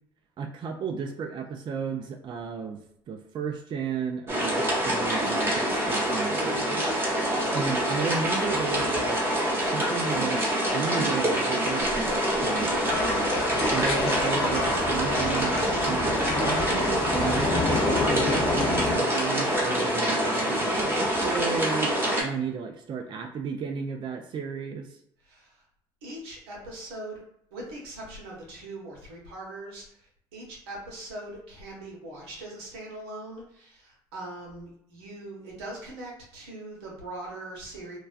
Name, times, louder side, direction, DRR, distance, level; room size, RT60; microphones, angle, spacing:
voice 1, 0.4-2.8 3.1-6.8 7.1-10.4 10.7-13.3 13.7-25.0, right 6 dB, 40° right, 4 dB, 0.4 m, -34 dB
sound 1, 4.3-22.2, equal, 20° right, 0.9 m, -26 dB
voice 2, 7.1-7.5 25.2-25.6 26.0-27.2 27.5-38.0, right 1 dB, 80° right, -2 dB, 0.8 m, -41 dB
sound 2, 11.8-18.8, left 2 dB, 85° left, 0.5 m, -38 dB
sound 3, 12.8-19.0, left 3 dB, 40° left, 0.7 m, -29 dB
2.3 x 2.2 x 2.4 m, 0.70 s
hypercardioid pair, 65°, 13 cm